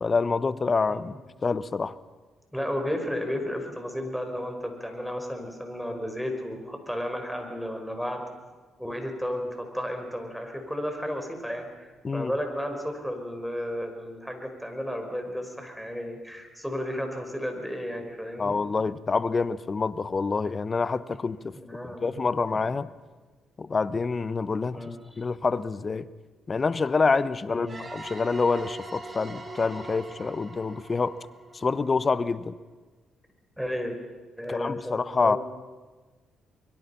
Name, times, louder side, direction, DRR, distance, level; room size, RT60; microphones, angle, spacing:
voice 1, 0.0-1.1 1.4-2.0 12.0-12.3 18.4-21.5 21.8-22.9 23.6-24.9 25.2-26.1 26.5-31.2 31.5-32.5 34.5-35.4, left 4 dB, 40° left, 16 dB, 1.0 m, -27 dB
voice 2, 2.5-8.2 8.8-18.6 21.5-22.2 24.7-25.2 27.5-27.8 33.6-33.9 34.4-35.4, equal, ahead, 5 dB, 5.4 m, -33 dB
sound 1, 27.7-32.3, right 2 dB, 30° right, 4.1 m, -42 dB
24.0 x 22.5 x 5.8 m, 1.3 s
hypercardioid pair, 50°, 0 cm